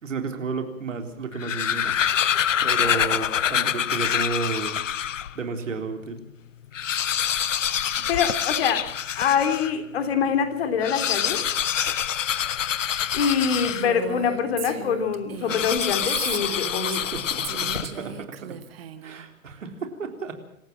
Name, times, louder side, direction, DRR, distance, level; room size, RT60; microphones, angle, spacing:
voice 1, 0.0-2.0 2.6-4.8 5.4-6.2 17.1-18.6 19.0-20.4, right 4 dB, 60° right, 5 dB, 3.8 m, -32 dB
sound 1, 1.2-5.4 5.9-6.0 6.2-6.3 6.6-9.8 10.7-14.2 15.5-18.2, left 9 dB, 60° left, 0.7 m, -26 dB
voice 2, 8.1-8.9 9.2-11.4 13.1-17.1, left 7 dB, 45° left, 8 dB, 3.4 m, -25 dB
Female speech woman speaking, 13.7-17.1 17.4-19.2, right 10 dB, 45° right, 1.8 m, -36 dB
26.5 x 15.0 x 7.5 m, 0.74 s
figure-of-eight pair, 120°, 42 cm